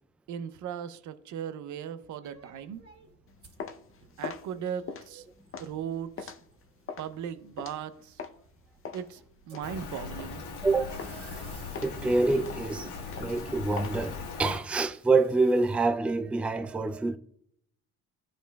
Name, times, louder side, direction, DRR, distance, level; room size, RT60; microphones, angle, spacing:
voice 1, 0.3-2.8 4.2-5.2 5.6-6.3 7.0-8.2 8.9-9.2 9.5-10.4, right 8 dB, 75° right, 0.6 m, -37 dB
sound 1, 2.2-15.9, right 2 dB, 45° right, 2.7 m, -55 dB
sound 2, 3.3-8.5 8.8-10.7 11.0-11.4 11.7-14.5, left 6 dB, 45° left, 0.7 m, -42 dB
Rain, 9.6-14.6, left 5 dB, 75° left, 1.4 m, -39 dB
voice 2, 10.6-11.5 11.8-12.9 13.2-17.2, right 3 dB, 5° right, 0.3 m, -27 dB
12.0 x 5.0 x 2.2 m
cardioid pair, 90°, 30 cm